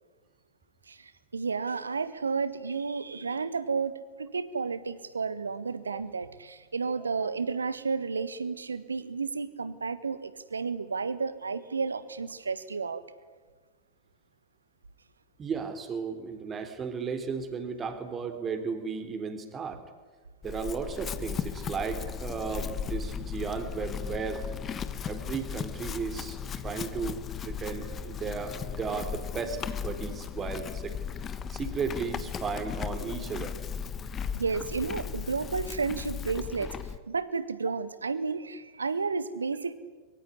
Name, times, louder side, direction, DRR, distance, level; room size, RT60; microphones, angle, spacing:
voice 1, 0.9-13.0 34.3-36.7 37.1-39.7, right 4 dB, 75° right, 14 dB, 1.5 m, -32 dB
voice 2, 15.4-19.8 20.4-24.4 25.0-31.0 31.3-33.6, right 5 dB, 25° right, 7 dB, 3.7 m, -35 dB
Chewing mastication / Livestock farm animals working animals, 20.4-37.0, left 7 dB, 25° left, 1.4 m, -36 dB
24.0 x 23.5 x 9.9 m, 1.4 s
figure-of-eight pair, 90°, 0 cm